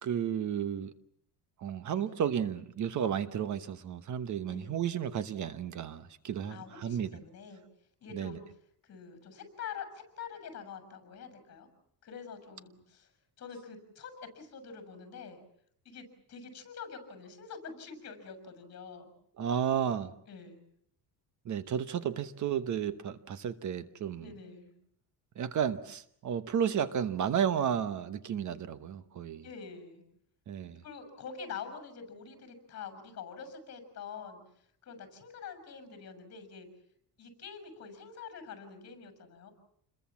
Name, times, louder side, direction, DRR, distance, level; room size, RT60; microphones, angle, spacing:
voice 1, 0.0-0.9 1.6-7.1 8.1-8.3 19.4-20.1 21.4-24.3 25.4-29.4 30.5-30.8, right 8 dB, 45° right, 12 dB, 1.1 m, -32 dB
voice 2, 4.5-4.8 6.5-7.6 8.0-8.4 8.8-11.7 12.0-13.1 13.4-15.4 15.8-19.1 20.3-20.6 24.2-24.7 29.4-30.0 30.8-34.4 34.8-36.7 37.2-39.5, left 6 dB, 40° left, 9 dB, 6.6 m, -46 dB
29.0 x 22.0 x 7.3 m, 0.70 s
cardioid pair, 175°, 40 cm